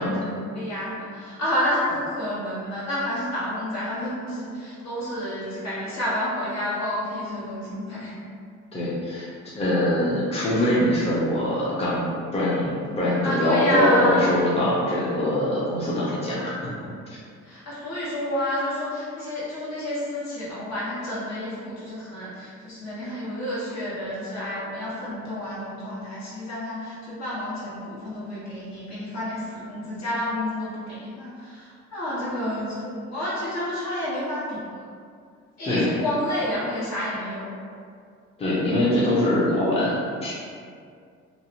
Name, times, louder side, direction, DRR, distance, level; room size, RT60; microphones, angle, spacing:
voice 1, 0.0-8.1 13.2-14.3 17.4-34.6 35.6-37.6, left 1 dB, 60° left, -10 dB, 1.2 m, -29 dB
voice 2, 8.7-9.3 9.6-16.6 17.1-17.2 35.6-35.9 38.4-40.3, left 1 dB, 20° left, -8 dB, 0.6 m, -23 dB
2.6 x 2.1 x 2.8 m, 2.2 s
cardioid pair, 90°, 30 cm